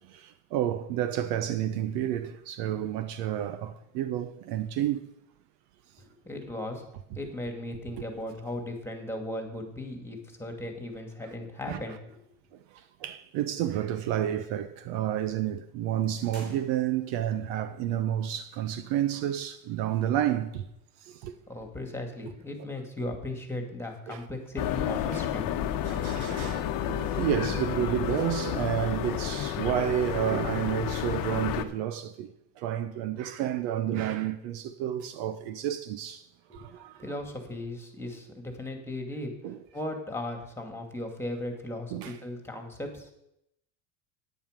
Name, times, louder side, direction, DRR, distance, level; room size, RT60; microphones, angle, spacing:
voice 1, 0.0-5.1 11.7-11.8 12.7-20.6 21.0-21.3 24.1-24.2 25.1-25.2 25.9-36.3 36.5-37.0 39.4-39.6 41.9-42.2, right 11 dB, 65° right, 0.9 m, -30 dB
voice 2, 6.1-6.8 7.1-12.2 21.5-25.5 36.5-36.7 37.0-39.3 39.7-43.1, left 1 dB, 5° left, 2.3 m, -37 dB
sound 1, 16.3-17.3, right 1 dB, 35° right, 5.4 m, -52 dB
sound 2, 24.6-31.7, left 10 dB, 45° left, 1.0 m, -31 dB
10.5 x 9.4 x 5.2 m
supercardioid pair, 105°, 47 cm